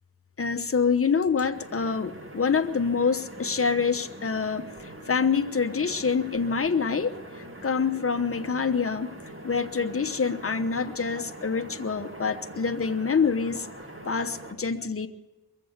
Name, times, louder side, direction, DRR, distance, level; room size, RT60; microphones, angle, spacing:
voice 1, 0.4-9.1 9.4-13.7 14.0-15.1, left 5 dB, 35° left, 7 dB, 1.0 m, -26 dB
sound 1, 1.5-14.5, right 1 dB, 35° right, 2.3 m, -43 dB
22.5 x 7.8 x 8.0 m, 1.1 s
cardioid pair, 50°, 37 cm